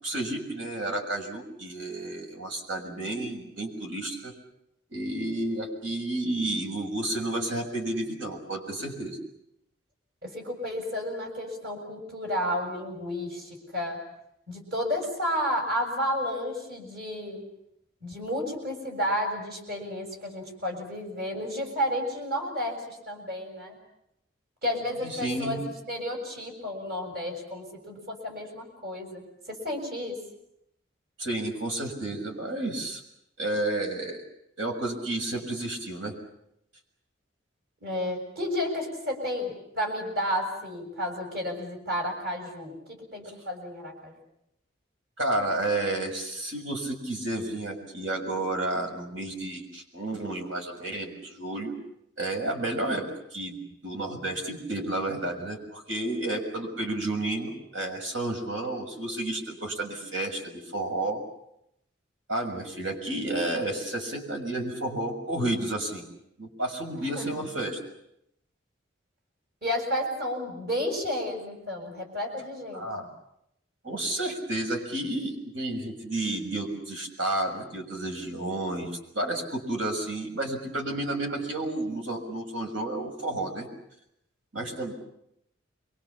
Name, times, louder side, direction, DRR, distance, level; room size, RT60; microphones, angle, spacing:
voice 1, 0.0-4.3 4.9-9.2 25.0-25.6 31.2-33.0 33.4-34.2 34.6-36.1 45.2-51.8 52.2-61.2 62.3-66.0 66.4-67.8 72.7-73.1 73.8-83.7 84.5-84.9, right 2 dB, 85° right, 3 dB, 6.6 m, -31 dB
voice 2, 10.2-14.0 14.5-17.4 18.0-23.8 24.6-30.2 37.8-44.1 67.0-67.4 69.6-72.9, equal, 55° right, 3 dB, 7.4 m, -32 dB
28.5 x 23.5 x 7.4 m, 0.80 s
head